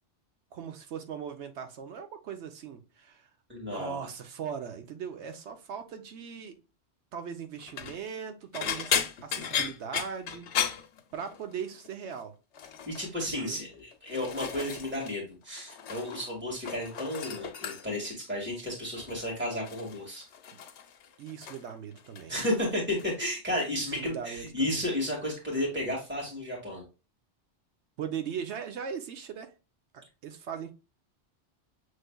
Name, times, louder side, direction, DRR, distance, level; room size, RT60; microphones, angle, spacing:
voice 1, 0.5-3.3 3.6-6.6 7.1-10.5 11.1-12.4 13.3-13.6 20.5-20.6 21.2-22.3 24.0-24.8 28.0-29.5 29.9-30.7, right 7 dB, 80° right, 1.0 m, -39 dB
voice 2, 3.5-4.0 12.9-20.2 22.3-26.8, left 1 dB, 10° right, 1.8 m, -33 dB
sound 1, 7.6-8.0 8.5-11.6 11.8-12.2 12.5-13.1 13.7-15.2 15.4-16.3 16.5-18.1 19.0-19.2 19.7-21.7 22.0-22.5 22.9-23.1 24.4-24.5, left 8 dB, 80° left, 1.0 m, -35 dB
6.4 x 3.2 x 2.2 m
omnidirectional pair, 1.2 m